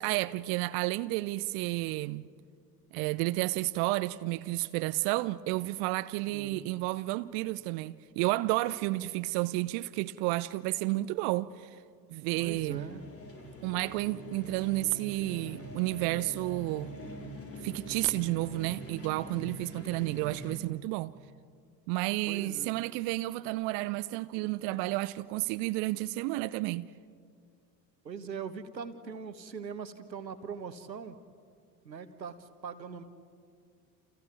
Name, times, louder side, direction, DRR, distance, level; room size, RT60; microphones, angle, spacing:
voice 1, 0.0-2.3 2.9-11.8 12.1-12.9 13.6-17.0 17.6-21.1 21.9-26.9, right 19 dB, 45° right, 0.6 m, -31 dB
voice 2, 6.3-6.7 12.4-13.1 22.3-22.7 28.0-31.1 31.8-33.0, right 6 dB, 80° right, 1.4 m, -41 dB
sound 1, 12.3-20.6, equal, 25° left, 4.0 m, -44 dB
29.5 x 28.5 x 4.7 m
figure-of-eight pair, 65°, 50 cm